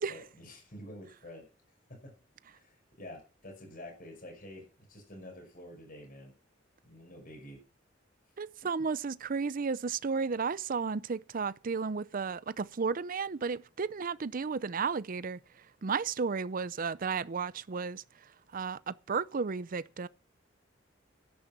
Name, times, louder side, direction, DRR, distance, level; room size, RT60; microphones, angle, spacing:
voice 1, 0.1-1.4 1.9-2.1 2.5-6.3 6.8-7.6, left 1 dB, 50° left, 5.8 m, -48 dB
voice 2, 8.4-15.4 15.8-18.0 18.5-20.1, right 5 dB, 45° right, 0.5 m, -33 dB
11.5 x 10.5 x 6.0 m
head